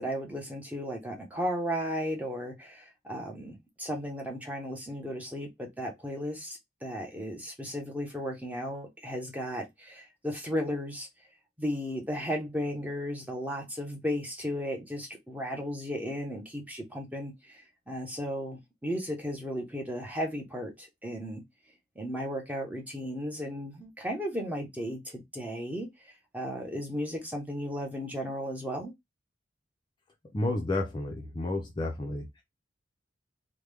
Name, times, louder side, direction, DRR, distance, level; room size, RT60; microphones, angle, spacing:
voice 1, 0.0-11.1 11.6-17.6 17.9-21.4 22.0-25.9 26.3-28.9, equal, 10° right, 0.8 m, -35 dB
voice 2, 30.3-32.3, left 2 dB, 25° left, 0.5 m, -31 dB
3.5 x 2.2 x 3.2 m
head